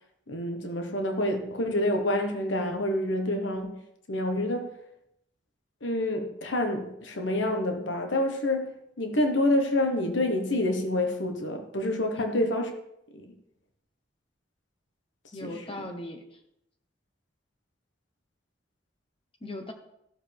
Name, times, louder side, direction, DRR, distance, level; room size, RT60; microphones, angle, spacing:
voice 1, 0.3-3.8 4.1-4.7 5.8-12.7 15.4-15.7, left 1 dB, 85° left, 1.2 m, -27 dB
voice 2, 12.2-12.5 15.3-16.4 19.4-19.7, left 1 dB, 30° left, 0.8 m, -39 dB
14.0 x 6.9 x 3.4 m
head